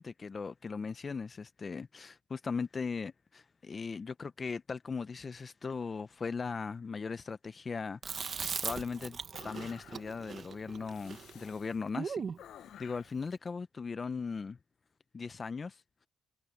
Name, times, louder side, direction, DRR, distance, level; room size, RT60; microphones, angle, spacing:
voice 1, 0.0-9.2 9.4-12.3 12.8-14.6 15.1-15.8, left 5 dB, 35° left, 0.7 m, -38 dB
Chewing mastication, 8.0-12.4, right 6 dB, 45° right, 1.3 m, -39 dB
sound 1, 9.3-10.3 10.9-11.8 12.4-13.2, left 10 dB, 75° left, 0.8 m, -53 dB
cardioid pair, 90°, 0 cm